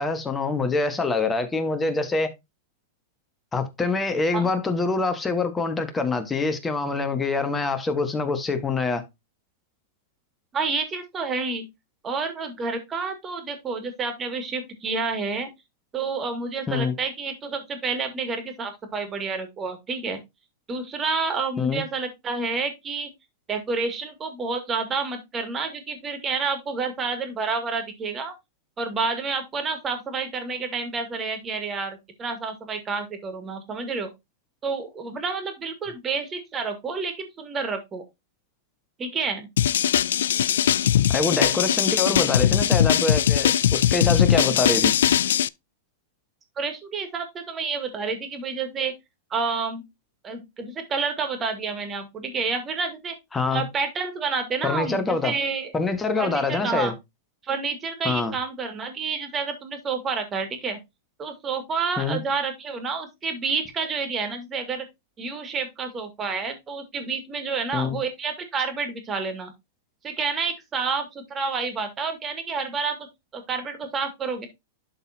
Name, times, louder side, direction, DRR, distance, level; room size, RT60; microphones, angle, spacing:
voice 1, 0.0-2.3 3.5-9.0 16.7-16.9 21.6-21.8 41.1-44.9 53.3-53.6 54.6-55.3 55.7-56.9 58.0-58.3 62.0-62.2 67.7-68.0, left 3 dB, 15° left, 1.5 m, -25 dB
voice 2, 10.5-11.6 12.0-15.5 15.9-20.2 20.7-23.1 23.5-28.3 28.8-34.1 34.6-38.0 39.0-39.5 46.6-48.9 49.3-49.8 50.2-53.2 53.5-55.7 56.2-56.9 57.4-60.8 61.2-64.8 65.2-69.5 70.0-73.1 73.3-74.5, right 4 dB, 20° right, 2.3 m, -29 dB
sound 1, 39.6-45.5, left 10 dB, 80° left, 0.3 m, -20 dB
12.0 x 4.0 x 2.8 m
hypercardioid pair, 130°, 0 cm